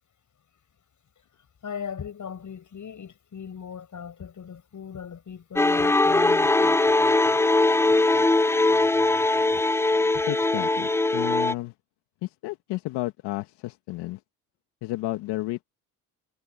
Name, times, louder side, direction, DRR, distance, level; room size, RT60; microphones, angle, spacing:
voice 1, 1.6-6.8, left 7 dB, 45° left, 5.9 m, -38 dB
sound 1, 5.6-11.5, left 2 dB, 5° left, 0.5 m, -21 dB
voice 2, 10.3-11.7 12.2-14.2 14.8-15.7, left 18 dB, 75° left, 1.8 m, -32 dB
hypercardioid pair, 55°, 42 cm